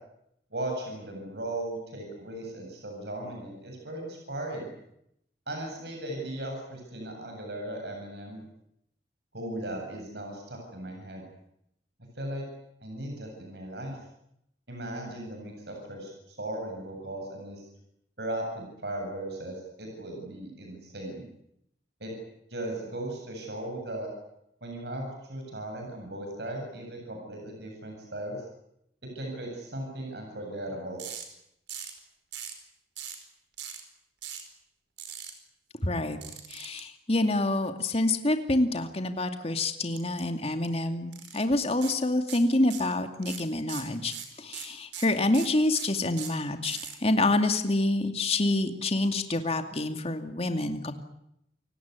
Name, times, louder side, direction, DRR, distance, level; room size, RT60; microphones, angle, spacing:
voice 1, 0.5-4.7 5.5-8.4 9.3-11.2 12.2-12.4 12.8-14.0 14.7-17.6 18.2-21.3 22.0-22.1 22.5-24.1 24.6-28.4 29.1-31.0, right 1 dB, 65° right, 2 dB, 8.0 m, -37 dB
sound 1, 31.0-31.3 31.7-32.0 32.3-32.6 33.0-33.2 33.6-33.8 34.2-34.5 35.0-35.3 36.2-36.8 40.0-40.2 40.5-40.7 41.1-41.4 41.8-42.0 42.3-42.9 43.2-47.0, right 9 dB, 90° right, 5.0 m, -40 dB
voice 2, 35.8-36.2 36.5-50.9, left 2 dB, 35° left, 6 dB, 2.4 m, -27 dB
28.5 x 17.5 x 9.8 m, 0.79 s
head